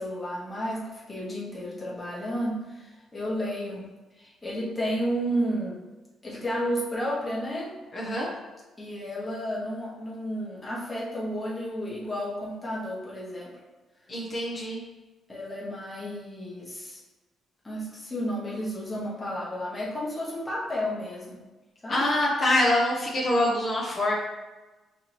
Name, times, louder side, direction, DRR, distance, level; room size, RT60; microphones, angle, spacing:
voice 1, 0.0-3.8 4.2-5.8 6.2-7.8 8.8-13.5 15.3-17.0 17.6-21.4 21.8-22.0, equal, 15° left, -6 dB, 1.3 m, -32 dB
voice 2, 7.9-8.3 14.1-14.8 21.9-24.1, left 1 dB, 45° left, -6 dB, 1.1 m, -25 dB
4.8 x 2.6 x 3.0 m, 1.2 s
cardioid pair, 90°, 0 cm